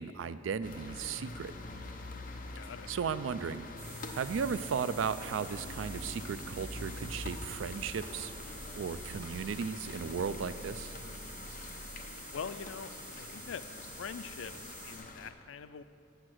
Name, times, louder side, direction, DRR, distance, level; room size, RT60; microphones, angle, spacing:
voice 1, 0.0-1.5 2.9-3.7 4.1-8.3 8.8-10.9, right 6 dB, 85° right, 14 dB, 0.4 m, -35 dB
sound 1, 0.6-15.3, left 2 dB, 45° left, 0.7 m, -45 dB
voice 2, 2.6-2.9 12.3-12.9 13.2-13.6 14.0-15.8, left 6 dB, 90° left, 12 dB, 0.4 m, -43 dB
sound 2, 3.8-15.0, right 1 dB, 10° right, 2.3 m, -49 dB
Walk footsteps, 5.2-10.3, equal, 50° right, 2.4 m, -56 dB
8.1 x 7.5 x 6.1 m, 2.5 s
head